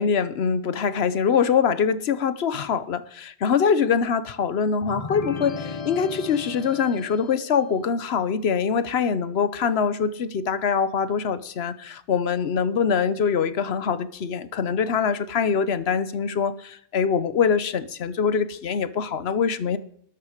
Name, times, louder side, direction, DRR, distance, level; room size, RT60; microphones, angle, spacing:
voice 1, 0.0-19.8, left 6 dB, 75° left, 14 dB, 1.1 m, -24 dB
sound 1, 4.8-7.6, left 5 dB, 35° left, 1.0 m, -35 dB
13.0 x 11.5 x 5.1 m, 0.65 s
omnidirectional pair, 1.1 m